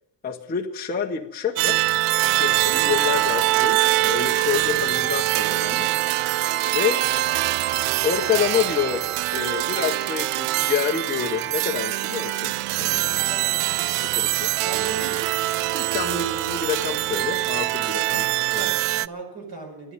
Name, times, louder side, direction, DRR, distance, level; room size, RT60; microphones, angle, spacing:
voice 1, 0.2-1.8 2.3-5.9 6.7-7.1 8.0-13.4 14.0-14.8 15.7-18.7, left 8 dB, 20° left, -1 dB, 0.8 m, -28 dB
sound 1, 1.6-19.1, right 17 dB, 90° right, 0.5 m, -23 dB
voice 2, 13.3-13.9 14.6-15.4 18.6-19.9, right 3 dB, 45° right, 3 dB, 5.3 m, -38 dB
12.5 x 11.0 x 9.4 m, 0.78 s
cardioid pair, 165°, 50 cm